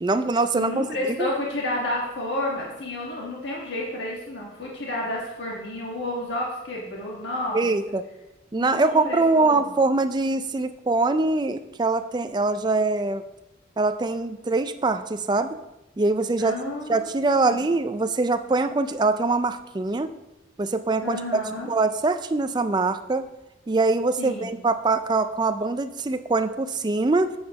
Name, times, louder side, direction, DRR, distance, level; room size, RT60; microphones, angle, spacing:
voice 1, 0.0-0.8 1.2-1.3 7.5-8.0 8.5-13.2 13.8-15.6 16.0-16.6 16.9-20.1 20.6-23.3 23.7-27.3, right 3 dB, 20° right, 10 dB, 0.4 m, -23 dB
voice 2, 0.5-7.7 8.5-9.6 16.4-17.6 21.0-21.7 24.2-24.5, left 1 dB, 65° left, -3 dB, 1.5 m, -31 dB
7.9 x 5.3 x 5.3 m, 0.94 s
head